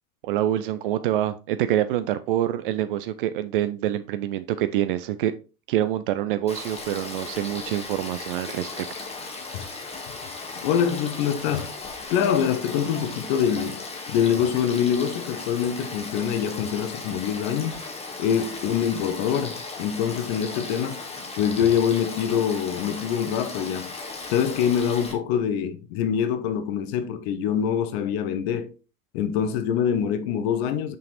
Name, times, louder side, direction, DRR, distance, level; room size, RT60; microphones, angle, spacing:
voice 1, 0.2-5.3 5.7-8.9, right 12 dB, 40° right, 0.4 m, -26 dB
Frog / Stream, 6.5-25.1, left 3 dB, 15° left, 1.4 m, -37 dB
voice 2, 10.5-11.7 12.1-13.8 14.1-17.8 18.2-21.0 21.4-23.9 24.3-28.7 29.1-31.0, left 8 dB, 45° left, 0.8 m, -25 dB
6.1 x 5.8 x 2.9 m
figure-of-eight pair, 80°, 45 cm